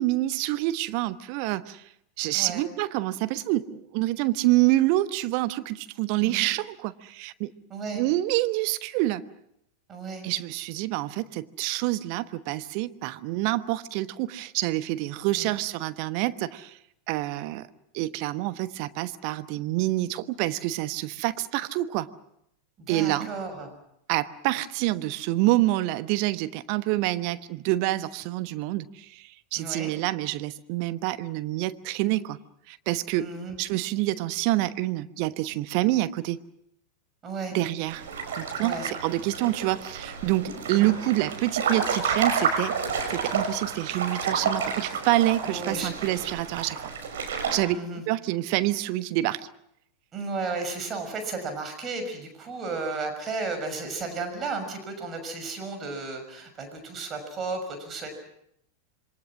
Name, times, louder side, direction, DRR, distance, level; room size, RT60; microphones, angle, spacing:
voice 1, 0.0-1.8 2.2-7.5 7.9-9.2 10.2-16.8 17.1-17.7 17.9-22.1 22.9-23.3 24.1-32.4 32.7-33.3 33.6-36.4 37.5-38.0 38.3-42.8 43.1-46.9 47.5-47.8 48.1-49.5, right 17 dB, 45° right, 12 dB, 1.1 m, -27 dB
voice 2, 7.7-8.0 9.9-10.2 15.3-15.5 22.8-23.8 29.5-29.9 33.1-33.6 37.2-37.5 38.6-38.8 40.7-40.9 45.4-46.1 47.6-48.0 50.1-58.1, right 3 dB, 25° right, 6 dB, 6.4 m, -34 dB
sound 1, 37.9-47.6, right 6 dB, 60° right, 5.8 m, -30 dB
27.0 x 24.0 x 6.2 m, 0.77 s
figure-of-eight pair, 90°, 0 cm